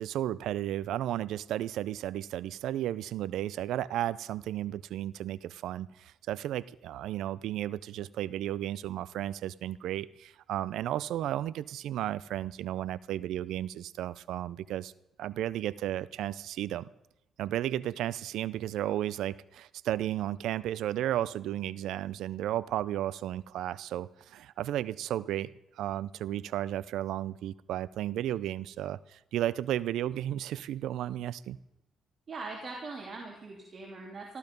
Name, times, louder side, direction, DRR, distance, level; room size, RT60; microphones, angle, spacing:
voice 1, 0.0-14.9 15.2-16.9 17.4-31.6, right 12 dB, 80° right, 20 dB, 0.4 m, -33 dB
voice 2, 32.3-34.4, right 3 dB, 45° right, -1 dB, 2.9 m, -41 dB
14.5 x 14.0 x 5.3 m, 0.90 s
cardioid pair, 90°, 0 cm